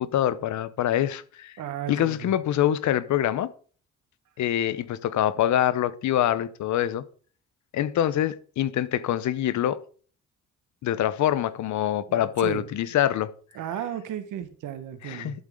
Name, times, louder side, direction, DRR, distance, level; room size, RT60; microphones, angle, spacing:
voice 1, 0.0-1.6 1.9-3.5 4.4-7.0 7.7-9.8 10.8-13.3 15.0-15.4, left 11 dB, 70° left, 0.8 m, -25 dB
voice 2, 1.6-2.3 12.1-12.6 13.5-15.4, right 10 dB, 80° right, 1.5 m, -34 dB
11.5 x 7.6 x 3.7 m
cardioid pair, 90°, 30 cm